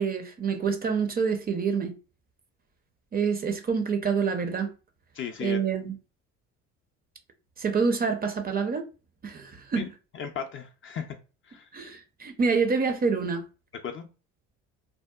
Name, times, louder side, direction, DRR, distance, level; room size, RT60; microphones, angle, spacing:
voice 1, 0.0-2.0 3.1-4.7 5.4-6.0 7.6-8.9 9.2-9.8 11.7-13.5, right 5 dB, 25° right, 0.5 m, -27 dB
voice 2, 5.1-5.6 9.7-9.9 10.1-11.2 11.5-11.7 13.8-14.1, left 7 dB, 35° left, 0.4 m, -35 dB
2.7 x 2.1 x 2.2 m
supercardioid pair, 75°, 36 cm